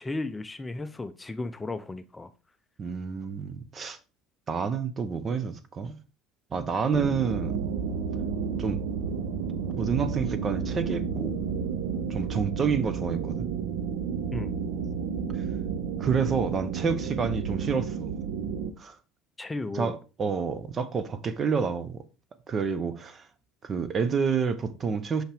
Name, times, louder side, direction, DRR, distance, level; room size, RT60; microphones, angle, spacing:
voice 1, 0.0-2.3 14.3-14.5 19.4-20.0, left 2 dB, 15° left, 0.5 m, -34 dB
voice 2, 2.8-4.0 4.5-6.0 6.5-7.7 8.6-8.8 9.8-11.4 12.1-13.5 16.0-18.1 18.8-19.0 19.7-22.0 22.5-23.2 23.6-25.2, right 5 dB, 35° right, 0.7 m, -29 dB
sound 1, 6.9-18.7, right 6 dB, 80° right, 0.7 m, -31 dB
5.8 x 5.5 x 3.4 m
supercardioid pair, 105°, 0 cm